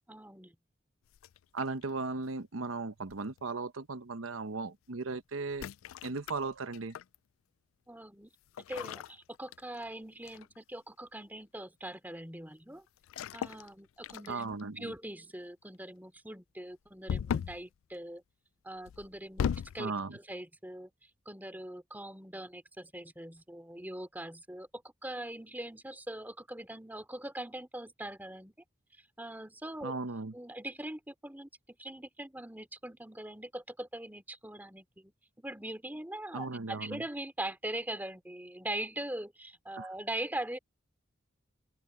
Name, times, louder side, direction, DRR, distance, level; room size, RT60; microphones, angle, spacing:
voice 1, 0.1-0.5 7.9-8.3 8.7-12.8 13.3-18.2 18.6-20.9 21.2-28.5 29.2-30.0 30.3-40.6, right 1 dB, 10° right, 3.2 m, -42 dB
sound 1, 1.1-1.9 3.1-3.4 5.5-7.2 8.5-9.9 10.3-10.6 13.0-13.7 14.0-14.6 17.1-17.7 18.9-19.8, left 7 dB, 90° left, 0.3 m, -37 dB
voice 2, 1.5-5.7 6.0-6.9 14.3-14.9 19.8-20.1 29.8-30.3 36.3-37.0 39.8-39.9, right 3 dB, 85° right, 0.9 m, -37 dB
open air
head